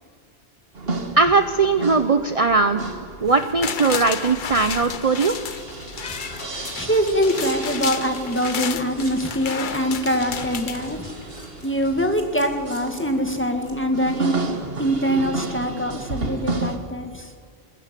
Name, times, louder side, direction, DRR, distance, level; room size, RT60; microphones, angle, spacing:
sound 1, 0.7-16.8, right 3 dB, 65° right, 1.9 m, -33 dB
voice 1, 1.1-2.9 3.2-5.3, right 4 dB, 35° right, 8 dB, 0.8 m, -19 dB
sound 2, 3.3-11.4 11.8-11.9, left 7 dB, 55° left, 0.9 m, -32 dB
Scissors, 4.8-14.2, left 1 dB, 35° left, 3.5 m, -45 dB
voice 2, 6.8-11.0 11.6-14.3 14.8-17.3, equal, 10° left, 5 dB, 1.9 m, -23 dB
21.5 x 21.5 x 7.7 m, 2.1 s
omnidirectional pair, 1.1 m